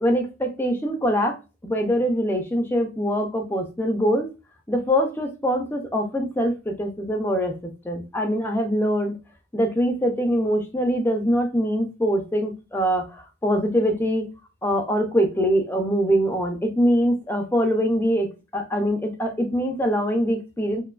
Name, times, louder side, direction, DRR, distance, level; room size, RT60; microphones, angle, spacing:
voice 1, 0.0-1.3 1.6-4.3 4.7-7.5 7.8-9.2 9.5-14.3 14.6-20.8, equal, 10° left, 3 dB, 0.4 m, -23 dB
2.5 x 2.2 x 2.3 m, 0.29 s
head